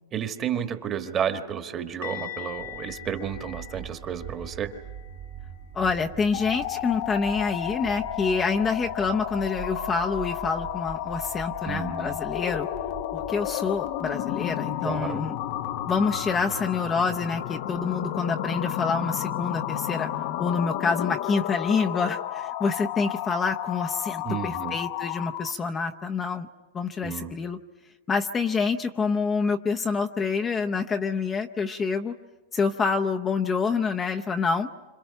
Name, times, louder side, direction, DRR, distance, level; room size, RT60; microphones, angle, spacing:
voice 1, 0.1-4.7 11.6-12.2 14.8-15.2 24.2-24.8 27.0-27.3, right 8 dB, 25° right, 7 dB, 1.4 m, -31 dB
sound 1, 2.0-7.8 8.0-8.3 8.6-8.8 12.0-12.1, left 14 dB, 90° left, 2.3 m, -44 dB
sound 2, 2.5-19.5, right 9 dB, 55° right, 1.7 m, -44 dB
voice 2, 5.7-12.7 13.1-15.4 15.9-20.1 20.4-26.5 26.7-27.6 28.1-32.1 32.5-34.7, left 5 dB, 20° left, 4 dB, 0.7 m, -27 dB
sound 3, 6.3-25.6, left 12 dB, 55° left, 0.7 m, -32 dB
28.5 x 26.5 x 5.7 m, 1.2 s
supercardioid pair, 145°, 0 cm